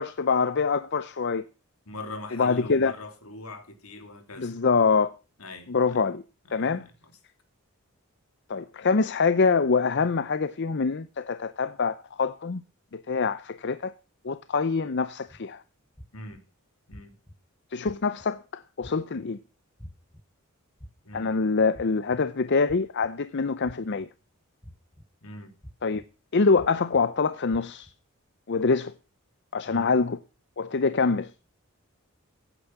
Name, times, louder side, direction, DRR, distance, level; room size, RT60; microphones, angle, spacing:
voice 1, 0.0-1.5 2.3-2.9 4.4-5.1 5.7-6.2 6.5-6.9 8.5-12.6 12.9-13.9 14.2-15.6 17.7-19.4 21.1-24.1 25.8-26.0 26.3-27.9 28.5-28.9 29.5-30.2 30.6-31.3, left 4 dB, 50° left, 0.6 m, -25 dB
voice 2, 1.9-4.5 5.4-6.0 6.5-7.1 16.1-16.4 16.9-17.2 21.0-21.4 25.2-25.5 29.6-30.0, left 2 dB, 75° left, 3.1 m, -42 dB
sound 1, 15.3-15.4 16.0-16.4 16.9-17.4 17.8-18.3 18.8-19.2 19.8-20.2 20.8-21.2 21.7-22.2 22.7-23.1 23.6-24.1 24.6-25.0 25.6-26.0 26.6-27.0 27.5-27.9, equal, 10° left, 1.1 m, -46 dB
15.5 x 9.1 x 5.9 m
head